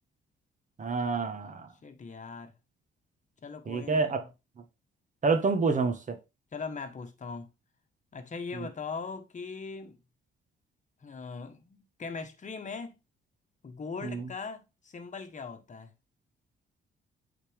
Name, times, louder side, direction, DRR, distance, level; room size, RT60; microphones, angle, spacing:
voice 1, 0.8-1.7 3.7-4.2 5.2-6.1 14.0-14.3, right 4 dB, 40° right, 1.5 m, -27 dB
voice 2, 1.8-2.5 3.4-4.3 6.5-7.5 8.1-10.0 11.0-12.9 13.6-15.9, left 4 dB, 40° left, 1.4 m, -40 dB
8.2 x 4.1 x 3.5 m
cardioid pair, 90°, 20 cm